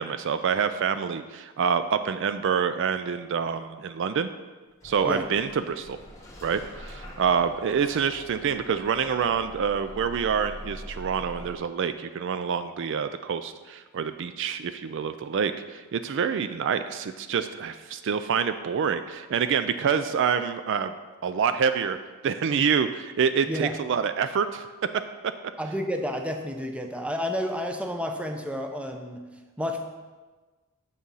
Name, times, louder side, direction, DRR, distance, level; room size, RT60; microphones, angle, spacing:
voice 1, 0.0-4.3 4.8-6.0 6.4-20.9 21.2-22.0 22.2-24.7, right 6 dB, 55° right, 10 dB, 0.3 m, -27 dB
Bus / Engine starting, 4.8-11.5, equal, 15° left, 1.4 m, -43 dB
voice 2, 23.5-23.8 25.6-29.2 29.6-29.8, equal, 5° right, 4 dB, 0.6 m, -30 dB
7.2 x 6.4 x 5.4 m, 1.3 s
head